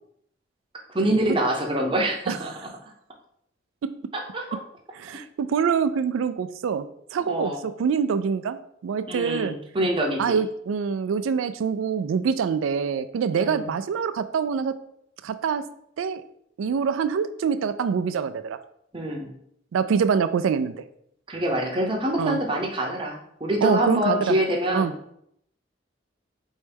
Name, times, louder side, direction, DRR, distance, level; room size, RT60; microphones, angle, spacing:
voice 1, 0.9-2.5 4.1-4.6 7.3-7.6 9.1-10.4 13.4-13.7 18.9-19.3 21.3-25.0, right 1 dB, 25° right, 0 dB, 0.7 m, -25 dB
voice 2, 5.0-6.9 7.1-7.5 7.8-9.5 10.2-14.7 15.2-15.6 16.0-16.2 16.6-18.6 19.7-20.7 22.2-22.4 23.6-24.4 24.7-24.9, right 6 dB, 85° right, 12 dB, 0.3 m, -25 dB
4.5 x 3.1 x 3.4 m, 0.72 s
head